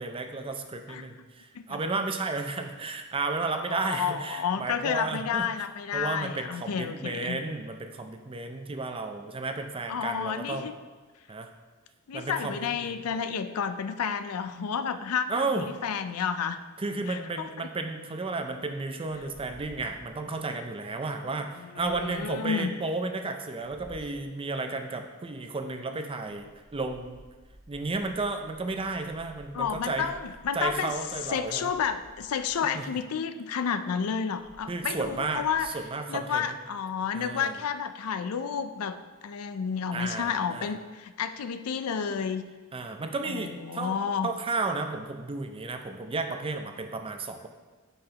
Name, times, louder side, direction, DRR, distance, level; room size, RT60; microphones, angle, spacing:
voice 1, 0.0-5.5 5.9-10.7 11.3-11.5 12.1-13.2 15.3-15.7 16.8-27.2 27.7-30.1 30.5-31.7 32.7-32.9 34.7-36.6 37.1-37.6 39.9-40.8 42.7-44.0 44.2-47.5, right 3 dB, 25° right, 6 dB, 0.5 m, -33 dB
voice 2, 3.8-7.4 9.9-10.7 12.1-16.6 17.1-17.7 21.6-22.7 29.5-30.9 31.3-35.7 36.1-39.0 39.2-42.4 43.3-44.3, left 7 dB, 75° left, 10 dB, 0.4 m, -31 dB
sound 1, 21.8-22.4 23.6-24.3 26.2-33.0 34.3-35.7, equal, 5° left, 1.4 m, -54 dB
8.7 x 5.7 x 2.9 m, 1.3 s
head